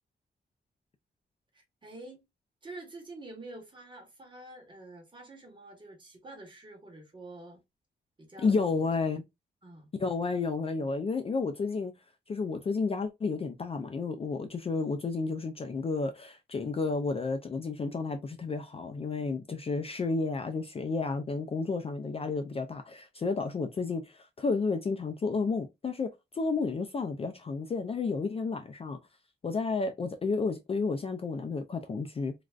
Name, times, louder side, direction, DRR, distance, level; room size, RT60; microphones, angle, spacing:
voice 1, 1.5-2.2 2.6-7.6 8.2-8.8 9.6-9.9 10.8-10.9, right 2 dB, 25° right, 1.1 m, -47 dB
voice 2, 8.4-9.2 10.0-11.9 12.3-29.0 29.4-32.3, left 4 dB, 30° left, 0.4 m, -31 dB
3.2 x 2.4 x 2.3 m
wide cardioid pair, 160°, 18 cm